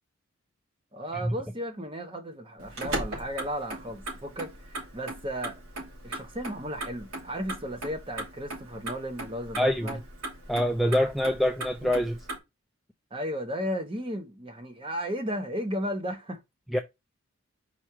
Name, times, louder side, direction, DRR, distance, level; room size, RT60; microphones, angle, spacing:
voice 1, 0.9-5.6 6.0-10.0 13.1-16.4, equal, 25° right, 1.0 m, -34 dB
Motor vehicle (road), 2.6-12.4, right 1 dB, 90° right, 2.9 m, -38 dB
voice 2, 9.6-9.9 10.5-12.2 16.7-16.8, equal, ahead, 0.3 m, -25 dB
4.9 x 4.2 x 4.5 m
head